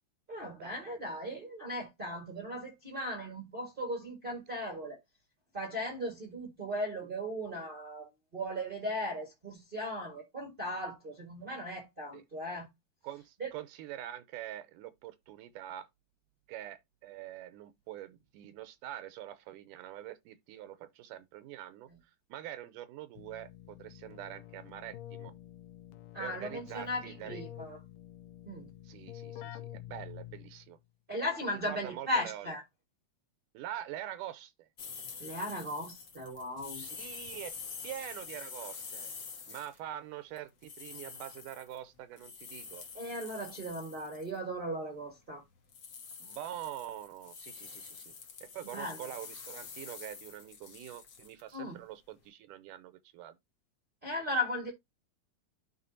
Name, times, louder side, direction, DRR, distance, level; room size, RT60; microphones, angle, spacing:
voice 1, 0.3-5.0 5.5-12.7 13.4-13.5 21.9-22.0 26.1-27.8 28.5-28.7 31.1-32.6 35.2-36.8 42.9-45.4 48.7-49.0 51.5-51.8 54.0-54.7, equal, 35° right, 0.8 m, -37 dB
voice 2, 13.0-15.9 16.5-21.9 22.3-25.3 26.2-27.4 28.8-30.8 31.5-32.5 33.5-34.7 36.7-37.6 37.8-39.1 39.5-42.9 46.2-48.1 48.4-53.4, right 12 dB, 85° right, 2.2 m, -45 dB
Keyboard (musical), 23.2-30.7, left 13 dB, 85° left, 2.3 m, -48 dB
sound 1, 34.8-39.8 40.4-44.4 45.7-51.5, left 6 dB, 50° left, 1.4 m, -47 dB
12.0 x 4.0 x 2.7 m
omnidirectional pair, 3.8 m